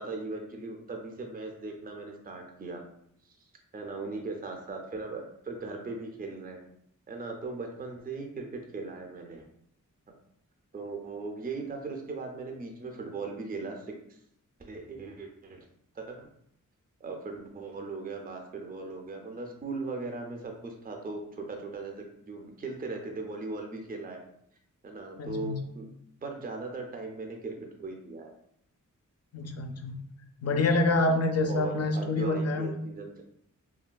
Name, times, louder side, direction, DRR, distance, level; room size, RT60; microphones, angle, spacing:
voice 1, 0.0-2.8 3.7-6.6 7.1-9.4 10.7-14.2 14.6-15.6 15.9-16.3 17.0-24.2 24.8-25.9 26.2-28.3 31.5-33.1, right 3 dB, 30° right, 3 dB, 0.4 m, -38 dB
voice 2, 25.2-25.6 29.3-30.0 30.4-32.7, left 2 dB, 55° left, 5 dB, 0.4 m, -27 dB
3.2 x 2.2 x 2.2 m, 0.71 s
wide cardioid pair, 85°, 32 cm